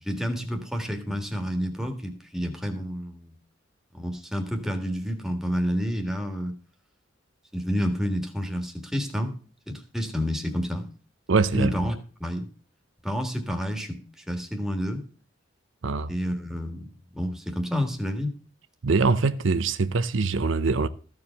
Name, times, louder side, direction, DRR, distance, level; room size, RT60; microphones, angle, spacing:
voice 1, 0.0-3.4 3.9-6.5 7.5-9.3 9.7-10.9 11.5-11.9 12.2-12.5 13.0-15.0 16.1-16.9 17.1-18.3, equal, ahead, 1.7 m, -29 dB
voice 2, 11.3-11.8 15.8-16.1 18.8-20.9, right 4 dB, 75° right, 0.6 m, -23 dB
14.5 x 4.8 x 7.0 m
head